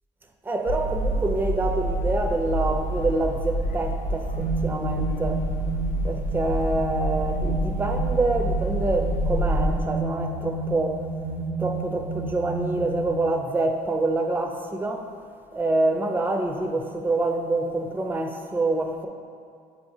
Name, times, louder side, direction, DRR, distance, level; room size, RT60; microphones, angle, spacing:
voice 1, 0.4-5.5 6.0-11.0 11.6-15.1 15.5-19.1, right 2 dB, 10° right, 0.5 m, -26 dB
sound 1, 0.7-9.8, right 1 dB, 45° left, 0.5 m, -27 dB
sound 2, 4.3-13.1, right 3 dB, 75° right, 1.1 m, -31 dB
8.0 x 2.7 x 4.9 m
cardioid pair, 110°, 17 cm